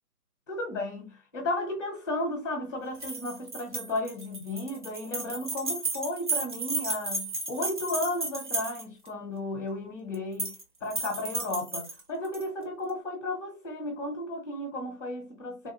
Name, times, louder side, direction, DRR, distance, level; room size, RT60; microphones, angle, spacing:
voice 1, 0.5-10.5 10.8-15.7, left 1 dB, 20° left, 0.8 m, -34 dB
sound 1, 3.0-9.1 10.1-10.6 10.9-12.4, right 3 dB, 35° right, 0.6 m, -33 dB
3.5 x 2.5 x 2.7 m
figure-of-eight pair, 155°, 46 cm